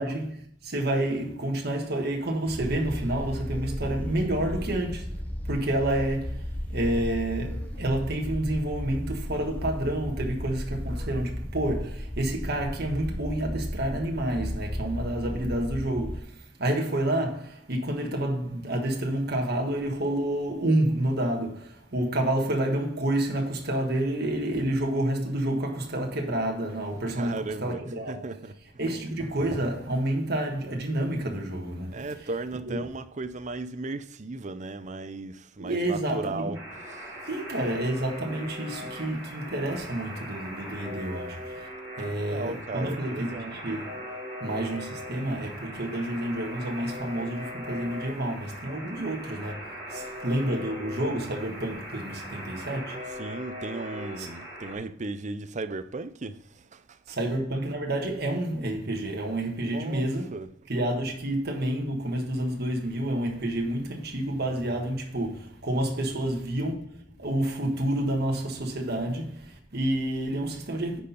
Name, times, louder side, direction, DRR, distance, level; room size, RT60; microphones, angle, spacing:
voice 1, 0.0-5.2 5.5-28.3 28.8-32.3 32.7-32.9 35.6-36.6 37.3-41.7 42.0-44.0 44.4-53.0 54.2-54.3 57.1-60.3 60.7-71.0, right 1 dB, 55° right, 1.4 m, -29 dB
sound 1, 2.5-16.2, equal, 10° left, 0.9 m, -34 dB
voice 2, 27.1-27.8 28.1-28.5 31.9-36.6 36.9-37.1 42.2-43.6 53.2-57.2 59.6-60.5, right 3 dB, 40° right, 0.6 m, -36 dB
Alarm, 36.5-54.7, equal, 15° right, 2.4 m, -40 dB
10.0 x 4.3 x 5.4 m
head